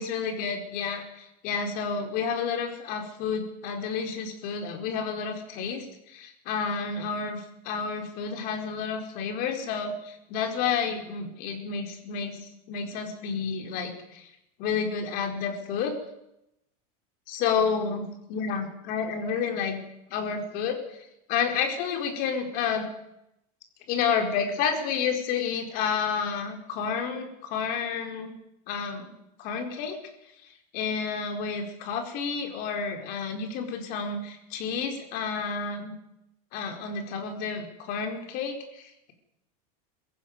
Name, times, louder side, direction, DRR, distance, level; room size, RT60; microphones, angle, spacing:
voice 1, 0.0-12.4 12.7-14.3 14.6-16.0 17.3-19.8 20.1-22.9 23.9-28.3 28.7-29.1 29.4-30.0 30.7-35.9 36.5-39.1, left 6 dB, 50° left, 4 dB, 4.7 m, -30 dB
22.0 x 15.5 x 9.5 m, 0.84 s
supercardioid pair, 155°, 20 cm